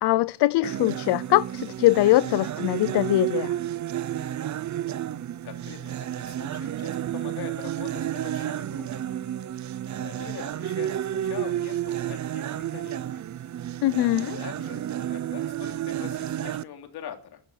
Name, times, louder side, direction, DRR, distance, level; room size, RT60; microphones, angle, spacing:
voice 1, 0.0-3.5 13.8-14.4, left 17 dB, 90° left, 0.6 m, -22 dB
sound 1, 0.6-16.6, right 11 dB, 45° right, 0.7 m, -31 dB
voice 2, 5.4-9.1 9.9-13.2 14.3-17.4, left 9 dB, 75° left, 3.2 m, -43 dB
12.0 x 11.0 x 8.5 m
cardioid pair, 140°, 39 cm